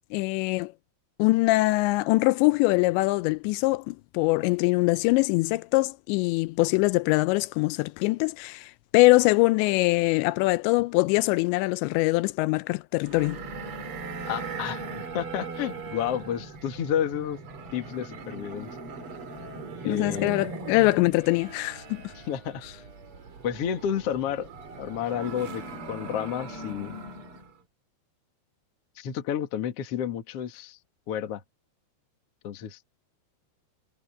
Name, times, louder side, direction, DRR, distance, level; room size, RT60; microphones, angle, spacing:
voice 1, 0.1-0.7 1.2-13.4 19.9-22.0, left 22 dB, 85° left, 2.8 m, -23 dB
sound 1, 13.0-27.5, right 3 dB, 35° right, 2.8 m, -39 dB
voice 2, 14.3-14.8 15.1-17.4 17.7-18.7 19.8-20.4 22.3-22.6 23.4-24.5 24.8-27.0 29.0-30.8 31.1-31.4 32.4-32.8, left 9 dB, 55° left, 1.8 m, -30 dB
omnidirectional pair, 5.1 m